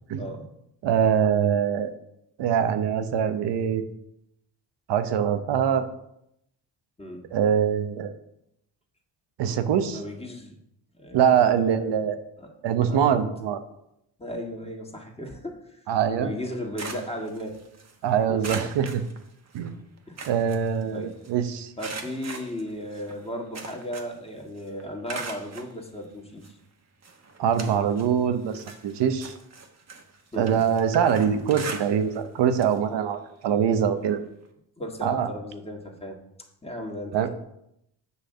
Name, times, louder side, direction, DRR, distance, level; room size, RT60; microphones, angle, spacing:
voice 1, 0.1-0.5 7.0-7.3 9.9-10.6 10.9-11.8 12.4-12.6 12.9-13.2 14.2-15.8 16.2-17.6 18.3-18.5 20.1-20.2 20.9-21.1 21.8-26.5 30.3-30.6 31.2-31.5 34.8-36.2 36.6-37.3, equal, 15° left, 1 dB, 1.8 m, -35 dB
voice 2, 0.8-1.9 2.4-3.8 4.9-5.8 7.3-8.1 9.4-10.0 11.1-12.2 12.6-13.6 15.9-16.3 18.0-19.0 19.5-19.7 20.3-21.7 27.4-29.3 30.4-34.2 35.0-35.3 37.1-37.3, right 8 dB, 70° right, 10 dB, 0.9 m, -23 dB
sound 1, 16.4-17.9 18.4-19.7 20.0-21.3 21.8-24.3 24.6-25.7 26.4-26.5 27.0-28.1 28.5-32.3 32.5-32.8 33.1-33.2 34.4-34.5, right 4 dB, 35° right, 1.2 m, -40 dB
8.2 x 3.3 x 6.5 m, 0.78 s
supercardioid pair, 65°, 44 cm